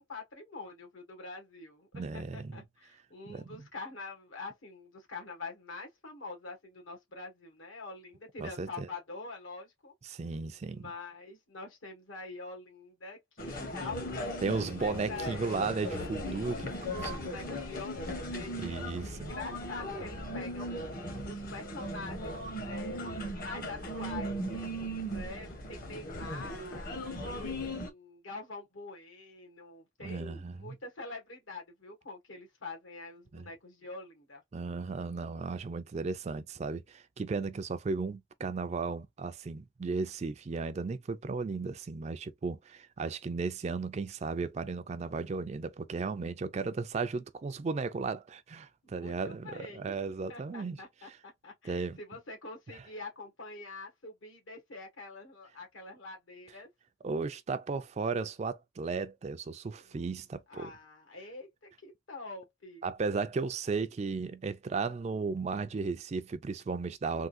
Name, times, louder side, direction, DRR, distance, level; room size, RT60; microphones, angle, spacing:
voice 1, 0.0-9.9 10.6-15.6 16.0-20.7 21.2-24.4 25.1-34.4 48.8-49.9 50.3-56.7 59.8-60.0 60.5-62.9, left 3 dB, 75° left, 1.4 m, -45 dB
voice 2, 1.9-2.5 3.3-3.5 8.4-8.9 10.0-10.9 14.4-16.6 18.6-19.3 30.0-30.8 33.3-33.5 34.5-50.8 51.6-52.0 57.0-60.7 62.8-67.3, right 4 dB, 35° right, 0.3 m, -35 dB
sound 1, 13.4-27.9, equal, 45° left, 0.9 m, -38 dB
3.6 x 2.4 x 2.5 m
head